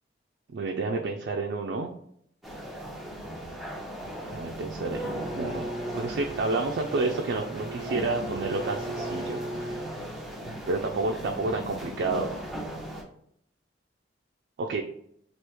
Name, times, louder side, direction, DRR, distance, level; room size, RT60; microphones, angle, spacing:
voice 1, 0.5-1.9 4.3-5.7 5.9-10.0 10.5-12.4 14.6-14.8, right 3 dB, 60° right, 2 dB, 0.3 m, -30 dB
sound 1, 2.4-13.0, equal, ahead, 0.7 m, -38 dB
Bowed string instrument, 4.9-10.4, right 2 dB, 50° left, 1.0 m, -38 dB
3.0 x 2.4 x 3.4 m, 0.69 s
head